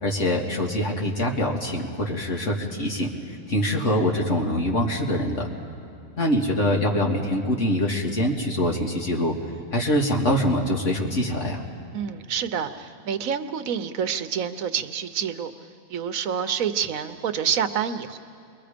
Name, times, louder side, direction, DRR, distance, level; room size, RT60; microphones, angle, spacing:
voice 1, 0.0-3.1 3.5-5.5 6.2-9.3 9.7-11.6, left 1 dB, 65° left, -1 dB, 2.3 m, -24 dB
voice 2, 11.9-15.5 15.9-18.2, right 8 dB, 80° right, 10 dB, 1.3 m, -27 dB
28.5 x 22.5 x 5.1 m, 2.6 s
omnidirectional pair, 1.4 m